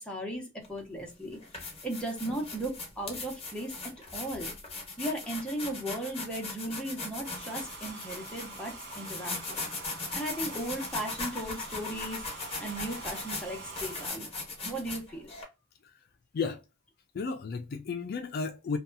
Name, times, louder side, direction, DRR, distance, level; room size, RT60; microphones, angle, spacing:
voice 1, 0.0-3.7 4.1-4.5 5.0-9.7 10.1-12.3 12.6-14.3 14.6-15.3, right 1 dB, 5° left, 0.8 m, -37 dB
sound 1, 0.6-0.8 1.3-15.4, left 3 dB, 30° left, 1.0 m, -39 dB
Domestic sounds home sounds, 7.2-14.1, right 3 dB, 60° right, 0.8 m, -46 dB
voice 2, 17.1-18.8, left 5 dB, 50° left, 0.3 m, -33 dB
2.7 x 2.2 x 2.4 m
head